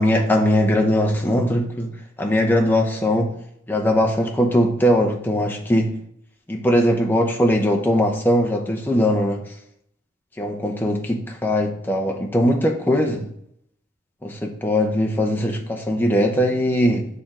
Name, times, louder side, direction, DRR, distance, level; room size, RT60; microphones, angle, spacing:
voice 1, 0.0-3.3 3.7-6.0 6.5-9.4 10.4-13.3 14.2-17.1, equal, 10° left, 0.7 m, -20 dB
6.7 x 3.8 x 4.2 m
head